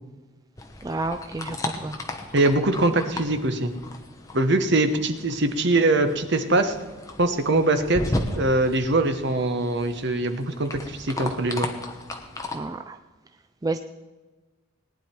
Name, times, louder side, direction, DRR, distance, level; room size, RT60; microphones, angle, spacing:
sound 1, 0.6-12.6, left 1 dB, 15° left, 1.0 m, -35 dB
voice 1, 0.8-2.0 12.5-13.0 13.6-13.8, right 2 dB, 15° right, 8 dB, 0.3 m, -30 dB
voice 2, 2.3-3.7 4.3-6.7 7.2-11.7, right 2 dB, 55° right, 8 dB, 1.0 m, -22 dB
18.5 x 10.0 x 4.5 m, 1.2 s
head